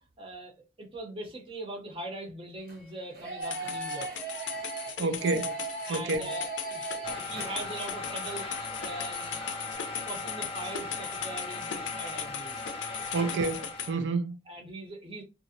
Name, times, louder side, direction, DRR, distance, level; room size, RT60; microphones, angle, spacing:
voice 1, 0.2-4.1 5.0-5.1 5.9-8.5 8.8-13.2 14.5-15.2, right 2 dB, 30° right, 0.6 m, -42 dB
sound 1, 2.6-9.7, right 3 dB, 55° right, 0.9 m, -39 dB
sound 2, 3.4-13.9, left 8 dB, 90° left, 0.5 m, -39 dB
voice 2, 5.0-5.5 5.9-6.3 13.1-14.4, right 3 dB, 80° right, 0.4 m, -29 dB
sound 3, 7.0-14.0, left 3 dB, 30° left, 0.5 m, -38 dB
2.4 x 2.0 x 2.6 m
head